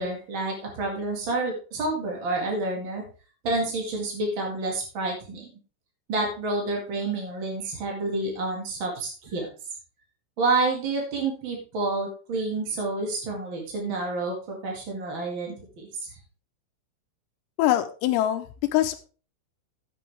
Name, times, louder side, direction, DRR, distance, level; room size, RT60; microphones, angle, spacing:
voice 1, 0.0-3.0 3.4-5.5 6.1-9.5 10.4-15.9, right 2 dB, 65° right, 0 dB, 1.2 m, -29 dB
voice 2, 17.6-19.0, left 13 dB, 90° left, 7 dB, 3.5 m, -24 dB
11.5 x 8.4 x 3.5 m, 0.36 s
omnidirectional pair, 5.9 m